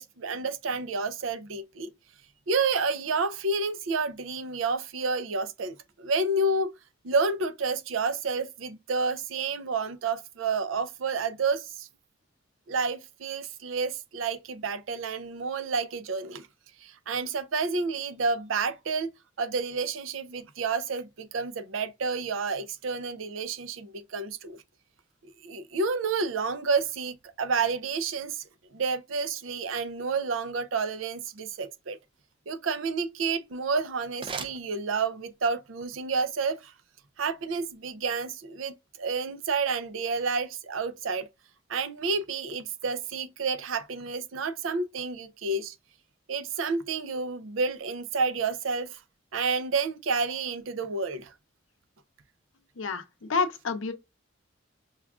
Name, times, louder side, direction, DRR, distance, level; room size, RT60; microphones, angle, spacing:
voice 1, 0.0-1.9 2.5-6.7 7.0-11.9 12.7-16.5 16.8-19.1 19.4-24.6 25.4-28.4 28.7-32.0 32.5-36.7 37.2-41.3 41.7-45.8 46.3-49.0 49.3-51.3, right 4 dB, 90° right, 0.5 m, -30 dB
sound 1, 33.3-35.4, right 5 dB, 25° right, 0.4 m, -41 dB
voice 2, 52.8-53.9, left 4 dB, 90° left, 0.6 m, -29 dB
5.6 x 2.3 x 2.3 m
head